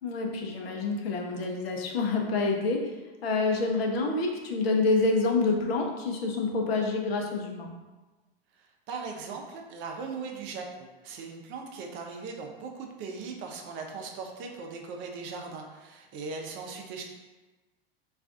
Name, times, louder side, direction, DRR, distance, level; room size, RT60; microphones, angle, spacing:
voice 1, 0.0-2.9 3.2-7.7, left 3 dB, 75° left, 1 dB, 0.6 m, -27 dB
voice 2, 8.5-17.0, right 4 dB, 40° right, 2 dB, 0.5 m, -39 dB
2.4 x 2.3 x 3.5 m, 1.2 s
hypercardioid pair, 95°, 31 cm